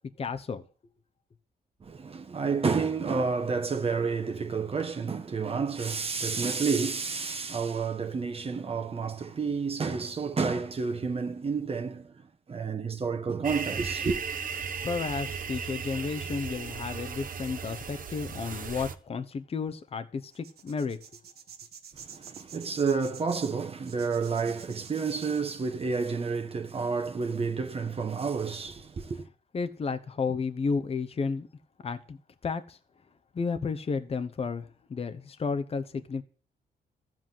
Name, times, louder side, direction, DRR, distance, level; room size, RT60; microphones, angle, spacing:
voice 1, 0.2-0.6 14.8-21.0 29.5-31.5 31.8-32.2 32.4-32.8 33.3-36.2, left 5 dB, 35° left, 1.0 m, -32 dB
voice 2, 1.8-12.1 12.5-14.2 22.0-29.2, right 5 dB, 35° right, 1.3 m, -30 dB
sound 1, 13.4-19.0, right 6 dB, 55° right, 1.3 m, -36 dB
sound 2, 20.3-25.5, right 7 dB, 75° right, 2.0 m, -49 dB
13.5 x 7.6 x 7.7 m
cardioid pair, 120°, 17 cm